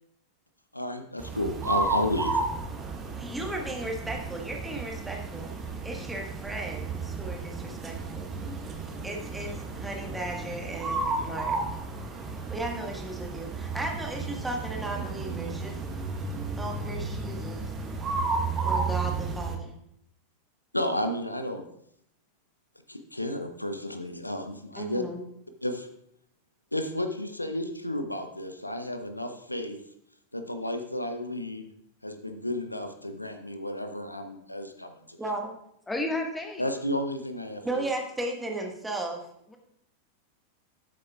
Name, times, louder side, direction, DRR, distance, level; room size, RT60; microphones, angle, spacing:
voice 1, 0.7-2.4 20.7-21.7 22.9-25.0 25.6-25.9 26.7-29.8 30.3-31.7 32.0-35.2 36.6-37.9, left 1 dB, 85° left, 7 dB, 0.7 m, -32 dB
sound 1, 1.2-19.6, right 3 dB, 25° right, 1.2 m, -33 dB
voice 2, 3.2-5.5 5.8-8.3 9.0-11.6 12.5-15.8 16.5-17.7 18.6-19.7 24.8-25.2 35.2-35.5 37.6-39.2, right 2 dB, 5° right, 1 dB, 1.5 m, -35 dB
voice 3, 35.9-36.7, left 2 dB, 10° left, 3 dB, 1.5 m, -31 dB
12.5 x 7.3 x 2.4 m, 0.74 s
figure-of-eight pair, 90°, 0 cm